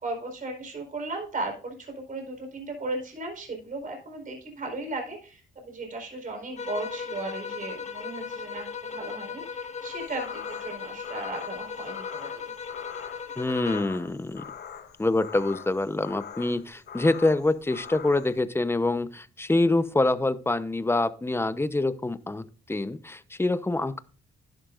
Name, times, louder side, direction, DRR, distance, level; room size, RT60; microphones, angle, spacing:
voice 1, 0.0-12.4, right 2 dB, 40° right, 3 dB, 4.5 m, -36 dB
sound 1, 6.6-14.0, left 6 dB, 35° left, 1.5 m, -37 dB
sound 2, 9.8-18.4, left 8 dB, 55° left, 1.3 m, -43 dB
voice 2, 13.4-14.4 15.0-24.0, left 2 dB, 10° left, 13 dB, 0.9 m, -26 dB
11.5 x 11.0 x 2.5 m, 0.37 s
cardioid pair, 90°, 20 cm